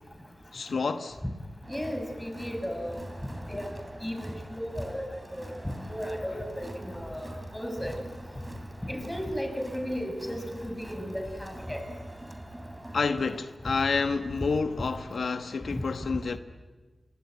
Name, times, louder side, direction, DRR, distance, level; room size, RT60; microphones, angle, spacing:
voice 1, 0.5-1.2 12.9-16.4, left 4 dB, 85° left, 1.1 m, -29 dB
Crowd, 1.6-13.4, right 1 dB, 15° right, 3.7 m, -44 dB
voice 2, 1.7-3.0 3.5-5.0 5.3-7.9 8.9-11.8 15.7-15.8, equal, 10° left, 6.4 m, -35 dB
27.0 x 23.5 x 9.4 m
wide cardioid pair, 70°, 0 cm